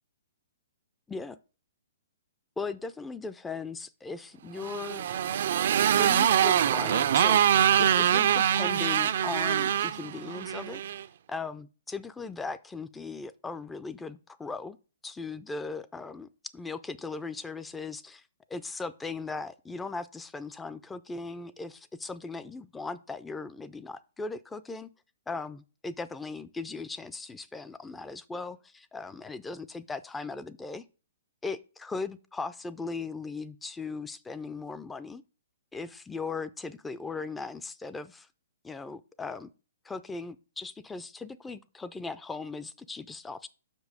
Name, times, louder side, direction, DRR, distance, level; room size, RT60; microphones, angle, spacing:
voice 1, 1.1-1.4 2.6-5.0 6.0-7.4 7.8-10.8 11.3-14.8 15.0-18.2 18.5-24.9 25.3-30.9 31.4-35.2 35.7-38.3 38.6-39.5 39.8-43.5, left 4 dB, 10° left, 0.4 m, -38 dB
Motorcycle, 4.6-11.0, right 10 dB, 60° right, 0.4 m, -24 dB
5.9 x 5.2 x 4.9 m
hypercardioid pair, 130°, 0 cm